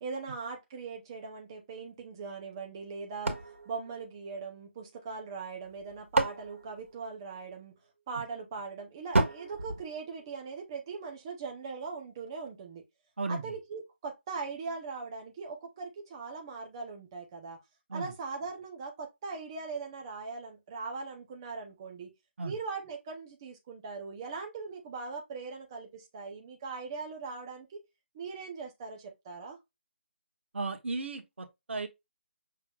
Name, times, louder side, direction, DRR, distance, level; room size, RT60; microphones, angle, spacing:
voice 1, 0.0-3.4 3.7-7.7 8.1-12.8 13.3-17.6 17.9-22.1 22.4-27.8 28.1-29.6, right 4 dB, 20° right, 0.7 m, -40 dB
sound 1, 3.2-4.8 5.6-7.6 9.1-10.7, right 2 dB, 90° right, 1.5 m, -33 dB
voice 2, 13.2-13.5 17.9-18.1 22.4-22.5 30.5-31.9, right 3 dB, 65° right, 1.1 m, -35 dB
5.9 x 3.3 x 2.3 m
hypercardioid pair, 170°, 7 cm